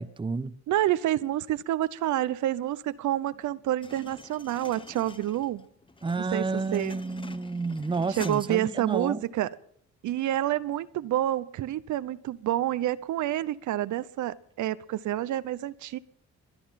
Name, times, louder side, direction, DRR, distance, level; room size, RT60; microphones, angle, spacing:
voice 1, 0.0-0.6 6.0-9.3, right 4 dB, 15° right, 0.8 m, -30 dB
voice 2, 0.7-5.7 6.3-6.4 6.7-6.9 8.2-9.5 10.0-16.0, right 13 dB, 75° right, 0.8 m, -28 dB
sound 1, 3.8-8.9, left 3 dB, 15° left, 1.1 m, -46 dB
22.0 x 11.0 x 5.8 m
cardioid pair, 90°, 30 cm